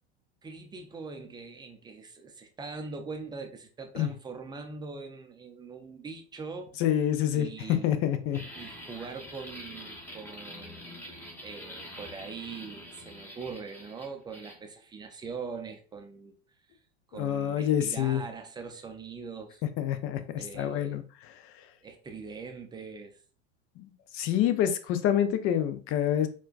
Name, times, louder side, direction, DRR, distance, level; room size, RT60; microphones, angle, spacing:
voice 1, 0.4-6.8 7.3-7.9 8.5-11.1 11.4-16.3 16.7-16.8 17.1-19.6 20.4-21.0 21.8-23.2, right 4 dB, 10° right, 0.5 m, -42 dB
voice 2, 6.8-7.5 7.8-8.4 17.1-18.2 19.8-20.2 20.5-21.3 23.8-26.3, left 10 dB, 40° left, 0.5 m, -27 dB
sound 1, 8.3-14.6, equal, 5° left, 1.0 m, -45 dB
4.3 x 2.3 x 2.4 m
hypercardioid pair, 90°, 35 cm